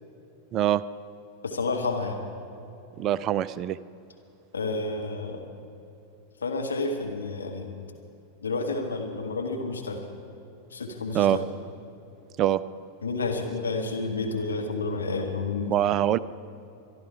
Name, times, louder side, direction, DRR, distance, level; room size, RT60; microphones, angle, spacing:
voice 1, 0.5-0.8 3.0-3.8 11.1-11.4 12.4-12.6 15.7-16.2, right 12 dB, 35° right, 17 dB, 0.4 m, -23 dB
voice 2, 1.4-2.2 4.5-5.4 6.4-7.7 8.4-10.0 10.7-11.5 13.0-15.8, left 3 dB, 75° left, 2 dB, 1.6 m, -30 dB
23.5 x 12.0 x 4.7 m, 2.8 s
figure-of-eight pair, 90°, 0 cm